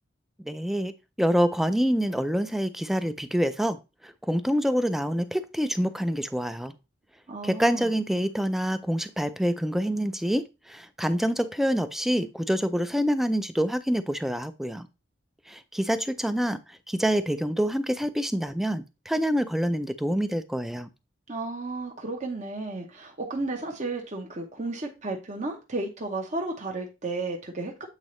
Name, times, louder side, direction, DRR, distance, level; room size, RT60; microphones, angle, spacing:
voice 1, 0.4-0.9 1.2-6.8 7.4-14.9 15.5-20.9, equal, ahead, 0.4 m, -26 dB
voice 2, 7.3-7.9 21.3-27.9, right 2 dB, 40° right, 0.9 m, -33 dB
8.2 x 3.9 x 3.1 m
head